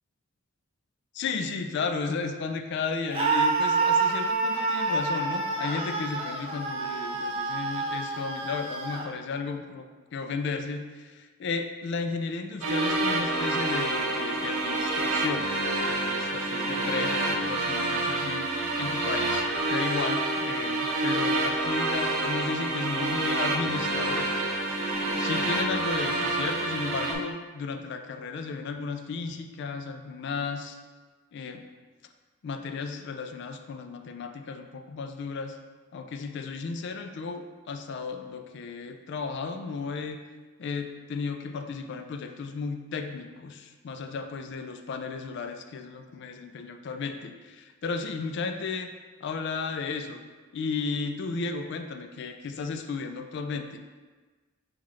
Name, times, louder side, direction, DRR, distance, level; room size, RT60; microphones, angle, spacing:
voice 1, 1.1-9.9 10.1-15.5 15.8-24.4 25.1-30.8 31.3-31.7 32.4-35.6 35.9-40.2 40.6-48.9 49.2-50.2 50.5-53.8, left 4 dB, 55° left, 6 dB, 0.3 m, -34 dB
Screaming, 3.1-9.1, right 4 dB, 25° right, 0.4 m, -28 dB
sound 1, 12.6-27.1, right 2 dB, 85° right, 0.7 m, -28 dB
5.6 x 2.4 x 3.1 m, 1.3 s
head